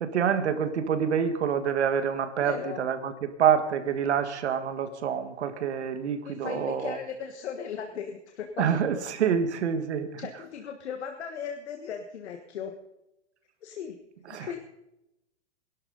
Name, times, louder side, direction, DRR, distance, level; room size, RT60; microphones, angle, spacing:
voice 1, 0.0-7.0 8.6-10.1 14.3-14.6, right 8 dB, 75° right, 9 dB, 1.8 m, -27 dB
voice 2, 2.4-2.9 6.2-8.7 10.2-12.7 13.6-14.0 14.3-14.6, left 7 dB, 70° left, 4 dB, 1.6 m, -37 dB
21.5 x 12.0 x 4.1 m, 0.88 s
supercardioid pair, 175°, 35 cm